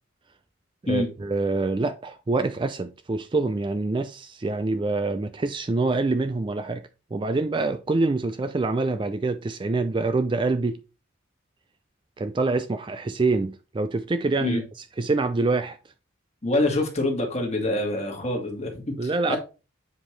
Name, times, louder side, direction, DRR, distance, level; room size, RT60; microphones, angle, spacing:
voice 1, 0.8-6.8 7.1-10.8 12.2-14.6 15.0-15.8 19.0-19.4, right 3 dB, 25° right, 0.3 m, -25 dB
voice 2, 16.4-19.4, left 1 dB, 30° left, 1.7 m, -26 dB
7.3 x 5.0 x 3.2 m
head